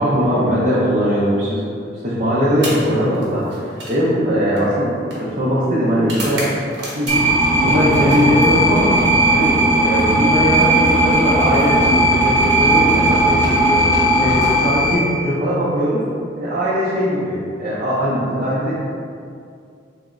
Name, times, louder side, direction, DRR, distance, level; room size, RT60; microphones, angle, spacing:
voice 1, 0.0-1.6 2.0-6.5 6.9-7.3 7.6-9.0 9.3-16.0 16.3-18.7, equal, 45° right, -11 dB, 0.6 m, -20 dB
sound 1, 2.5-7.5 7.8-9.1 10.3-12.1 13.2-13.4 14.2-15.4, right 1 dB, 85° right, 0.9 m, -35 dB
sound 2, 7.1-15.0, right 1 dB, 15° left, 0.6 m, -16 dB
3.3 x 2.0 x 3.6 m, 2.4 s
head